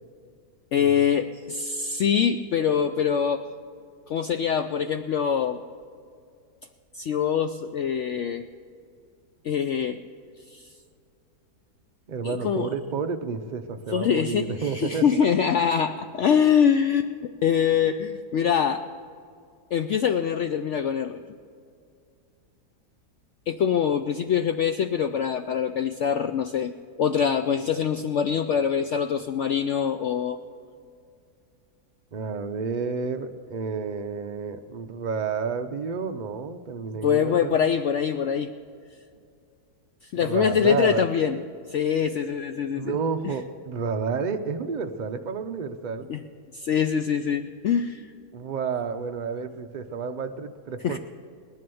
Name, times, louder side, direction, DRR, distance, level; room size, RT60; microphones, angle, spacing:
voice 1, 0.7-3.5 4.1-5.6 6.9-8.5 9.4-10.0 10.5-10.7 12.2-12.7 13.9-17.1 17.4-18.8 19.7-21.2 23.5-30.4 37.0-38.5 40.1-41.4 41.7-43.0 43.2-43.3 46.1-46.2 46.5-48.1 50.8-51.0, left 8 dB, 70° left, 8 dB, 0.7 m, -24 dB
voice 2, 12.1-15.3 32.1-37.6 40.2-41.0 42.7-46.1 48.3-51.0, right 5 dB, 85° right, 7 dB, 0.4 m, -30 dB
18.5 x 11.0 x 6.9 m, 2.3 s
omnidirectional pair, 1.7 m